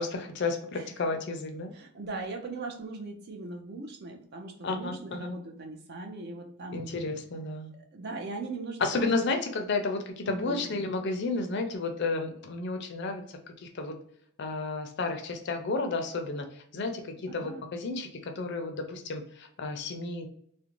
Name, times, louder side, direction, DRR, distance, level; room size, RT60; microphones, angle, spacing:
voice 1, 0.0-1.7 4.6-5.4 6.7-7.7 8.8-14.0 14.4-20.3, left 3 dB, 50° left, 5 dB, 0.4 m, -32 dB
voice 2, 1.7-6.8 7.9-9.2 10.2-10.7 17.3-17.6, right 3 dB, 45° right, 2 dB, 0.5 m, -39 dB
2.5 x 2.1 x 2.9 m, 0.64 s
head